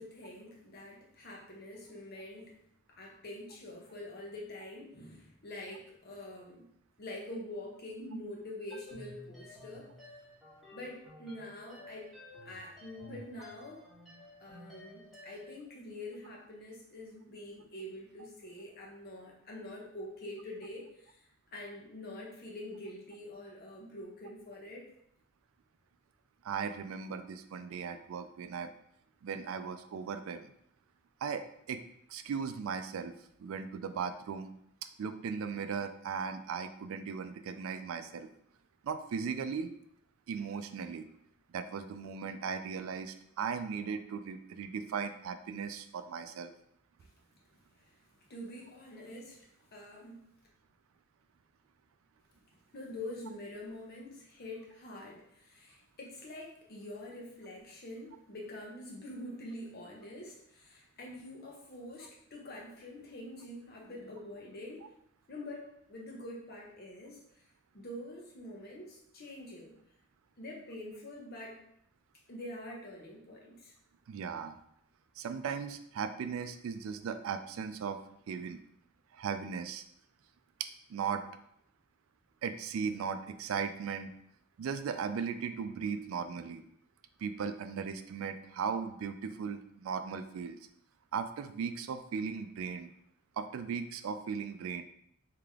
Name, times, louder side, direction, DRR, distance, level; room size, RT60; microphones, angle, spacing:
voice 1, 0.0-2.5 2.9-6.7 7.0-9.9 10.7-12.1 12.4-13.9 14.4-21.2 21.5-24.9 47.8-48.0 48.3-50.2 52.7-64.9 65.3-67.2 67.7-69.7 70.4-71.6 72.3-73.7, left 1 dB, 50° left, -1 dB, 0.9 m, -45 dB
sound 1, 8.7-15.6, left 2 dB, ahead, 1.3 m, -53 dB
voice 2, 26.4-28.7 29.2-30.5 31.2-31.8 32.1-33.1 33.4-34.5 35.0-38.3 38.8-39.7 40.3-41.1 41.5-46.5 74.1-74.6 75.2-78.0 78.3-78.6 79.1-79.8 80.6-81.3 82.4-84.1 84.6-86.6 87.2-90.6 91.1-92.9 93.4-94.8, right 6 dB, 75° right, 9 dB, 0.3 m, -37 dB
3.3 x 2.9 x 3.5 m, 0.72 s
head